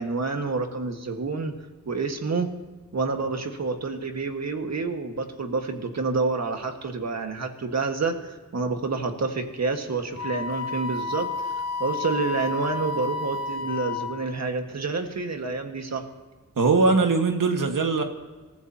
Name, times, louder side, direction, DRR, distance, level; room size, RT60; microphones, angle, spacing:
voice 1, 0.0-1.6 1.8-2.5 2.9-16.1, right 4 dB, 55° right, 5 dB, 1.7 m, -28 dB
Wind instrument woodwind instrument, 10.1-14.3, left 4 dB, 60° left, 2.1 m, -31 dB
voice 2, 16.6-18.0, right 3 dB, 80° right, 4 dB, 1.8 m, -21 dB
27.0 x 14.5 x 2.9 m, 1.3 s
wide cardioid pair, 120°, 32 cm